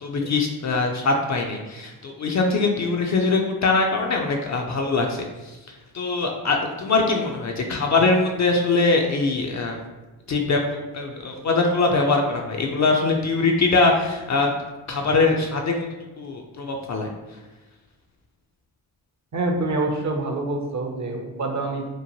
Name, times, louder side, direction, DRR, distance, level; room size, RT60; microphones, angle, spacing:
voice 1, 0.0-5.2 5.9-9.8 10.3-14.5 14.9-15.7 16.2-17.1, left 3 dB, 40° left, 1 dB, 0.4 m, -22 dB
voice 2, 19.3-21.9, right 2 dB, 35° right, 2 dB, 0.6 m, -26 dB
3.0 x 2.1 x 2.7 m, 1.1 s
hypercardioid pair, 45°, 49 cm